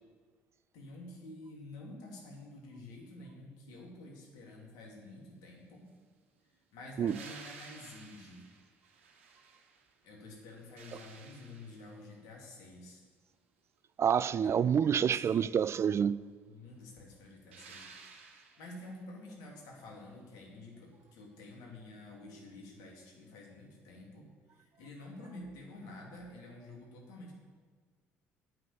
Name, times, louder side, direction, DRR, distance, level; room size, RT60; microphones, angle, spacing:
voice 1, 0.7-5.9 6.7-8.4 10.0-13.0 14.4-15.5 16.4-17.9 18.3-27.3, left 2 dB, 70° left, 2.6 m, -50 dB
sound 1, 7.1-10.0 10.4-12.1 17.5-19.0 21.5-21.6, right 5 dB, 85° right, 1.1 m, -54 dB
voice 2, 14.0-16.2, right 8 dB, 45° right, 0.4 m, -28 dB
8.8 x 6.3 x 8.5 m
hypercardioid pair, 55°, 7 cm